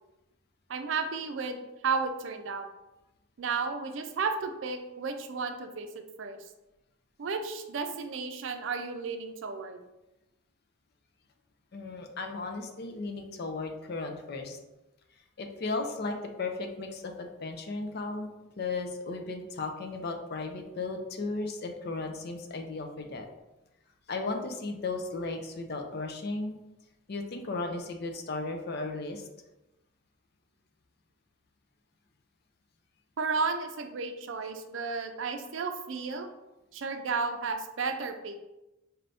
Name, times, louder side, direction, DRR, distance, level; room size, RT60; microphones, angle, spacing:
voice 1, 0.7-2.7 3.4-5.9 6.2-6.4 7.2-9.8 33.2-36.3 36.7-38.4, right 4 dB, 70° right, 7 dB, 0.4 m, -33 dB
voice 2, 11.7-14.6 15.4-18.3 18.6-23.3 24.1-26.6 27.1-29.3, left 3 dB, 55° left, 4 dB, 0.5 m, -35 dB
4.3 x 2.6 x 3.4 m, 0.97 s
head